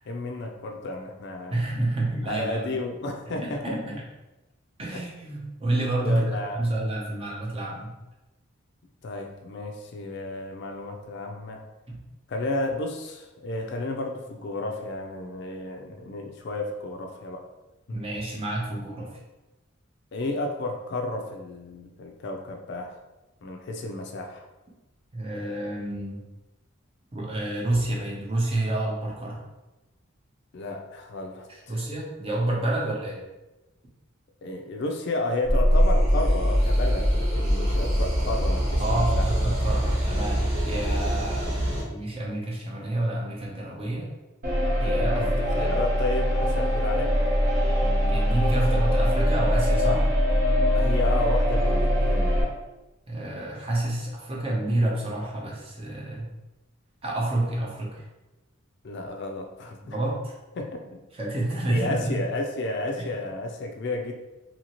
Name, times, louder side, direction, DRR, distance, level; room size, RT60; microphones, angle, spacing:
voice 1, 0.1-1.6 2.3-4.0 4.9-5.0 6.0-6.6 9.0-11.6 12.3-17.4 17.9-18.0 20.1-22.9 23.4-24.4 30.5-31.8 34.4-39.3 45.2-47.1 50.7-52.5 58.8-60.0 60.6-61.0 61.7-64.1, left 2 dB, 55° left, 2 dB, 0.4 m, -32 dB
voice 2, 1.5-2.7 3.3-4.0 4.8-7.9 11.9-12.0 17.9-19.1 25.1-26.2 27.1-29.4 31.5-33.2 38.8-44.1 44.8-45.8 47.8-50.0 53.1-56.3 57.0-58.0 59.8-60.3 61.1-62.2 63.0-63.1, right 1 dB, 25° right, -3 dB, 0.6 m, -29 dB
sound 1, 35.4-41.8, equal, 75° right, 1.1 m, -23 dB
sound 2, 44.4-52.4, equal, 45° right, 0.9 m, -23 dB
2.8 x 2.7 x 2.9 m, 1.1 s
head